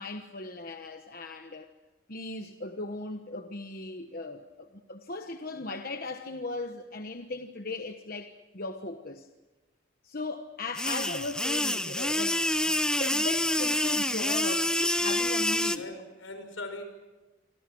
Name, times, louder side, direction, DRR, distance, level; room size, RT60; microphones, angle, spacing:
voice 1, 0.0-1.7 2.1-9.3 10.0-15.8, left 2 dB, 45° left, 1.2 m, -38 dB
sound 1, 10.8-15.8, left 1 dB, 5° left, 0.7 m, -27 dB
voice 2, 15.7-16.8, left 2 dB, 80° left, 6.3 m, -40 dB
27.0 x 26.0 x 6.3 m
head